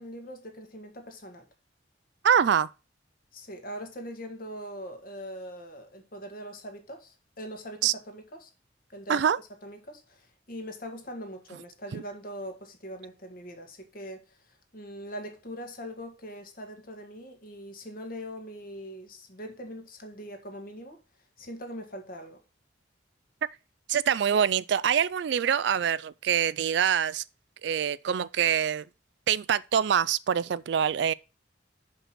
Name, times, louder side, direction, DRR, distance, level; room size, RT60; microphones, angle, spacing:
voice 1, 0.0-1.5 3.3-8.5 8.9-9.3 9.6-21.0 21.4-22.4, equal, 50° left, 1.8 m, -42 dB
voice 2, 2.2-2.7 7.8-7.9 9.1-9.4 11.9-12.0 23.9-27.2 27.6-28.9 29.3-31.1, right 8 dB, 60° right, 0.3 m, -25 dB
6.0 x 5.2 x 6.3 m
head